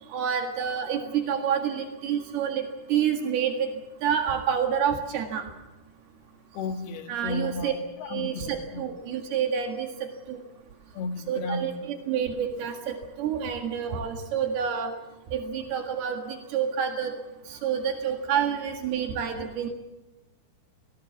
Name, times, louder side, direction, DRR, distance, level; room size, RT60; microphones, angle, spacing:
voice 1, 0.1-2.6 2.9-3.7 4.0-5.4 7.1-7.7 8.1-9.9 10.3-10.4 11.3-14.9 15.3-17.1 17.5-19.7, right 8 dB, 85° right, 4 dB, 3.9 m, -28 dB
voice 2, 6.6-8.8 11.0-11.9, left 3 dB, 85° left, 8 dB, 3.5 m, -34 dB
25.5 x 19.0 x 7.2 m, 1.1 s
omnidirectional pair, 4.4 m